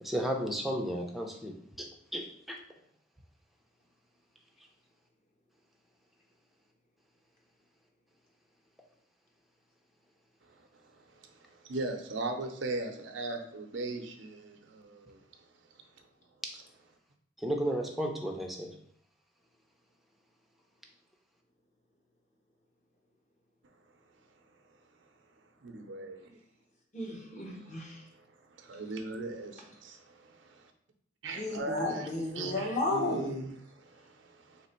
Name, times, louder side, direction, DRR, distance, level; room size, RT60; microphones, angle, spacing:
voice 1, 0.0-1.5 1.8-1.9 2.1-2.6 17.4-18.7, equal, ahead, 1 dB, 0.5 m, -33 dB
voice 2, 11.4-15.2 25.6-26.3 28.0-28.1 28.5-30.7 31.2-32.1 32.4-34.7, right 3 dB, 70° right, 6 dB, 0.6 m, -39 dB
voice 3, 26.9-28.0 31.3-33.4, left 2 dB, 40° left, -1 dB, 1.0 m, -33 dB
3.3 x 3.2 x 4.3 m, 0.65 s
head